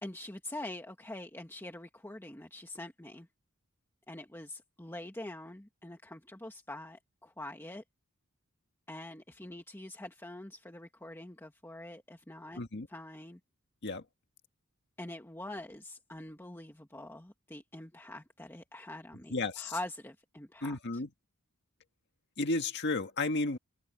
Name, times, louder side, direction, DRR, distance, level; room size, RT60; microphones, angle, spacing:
voice 1, 0.0-3.3 4.1-7.8 8.9-12.6 12.9-13.4 15.0-21.0, left 1 dB, 10° left, 1.5 m, -45 dB
voice 2, 12.6-12.9 13.8-14.0 19.3-19.8 20.6-21.1 22.4-23.6, left 2 dB, 55° left, 1.7 m, -33 dB
head